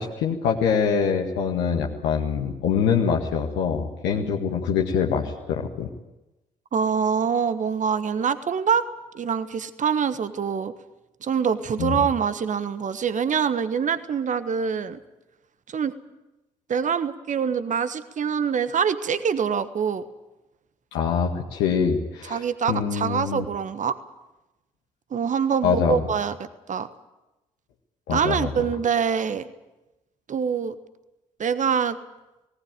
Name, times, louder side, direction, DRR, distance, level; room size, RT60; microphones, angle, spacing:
voice 1, 0.0-5.9 11.8-12.0 20.9-23.4 25.6-26.0 28.1-28.5, left 6 dB, 65° left, 0 dB, 1.8 m, -24 dB
voice 2, 6.7-8.9 9.1-10.7 11.2-15.0 15.7-15.9 16.7-20.0 22.3-24.0 25.1-26.9 28.1-29.5 30.3-30.7 31.4-32.0, right 7 dB, 40° right, 12 dB, 1.3 m, -25 dB
18.5 x 18.0 x 9.0 m, 0.99 s
figure-of-eight pair, 45°, 19 cm